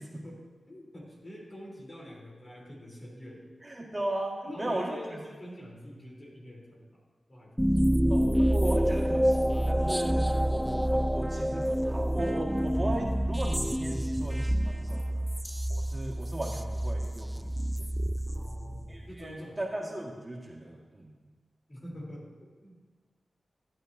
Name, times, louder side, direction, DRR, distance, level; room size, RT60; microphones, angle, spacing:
voice 1, 0.0-3.6 4.4-7.0 7.3-7.9 18.3-19.6 21.7-22.9, left 1 dB, 45° left, -3 dB, 3.5 m, -45 dB
voice 2, 3.6-5.0 8.1-15.2 15.7-17.9 18.9-21.1, right 1 dB, 25° right, -2 dB, 1.8 m, -37 dB
sound 1, 7.6-19.1, equal, 5° right, 0.3 m, -28 dB
14.0 x 10.0 x 2.7 m, 1.4 s
cardioid pair, 65°, 0 cm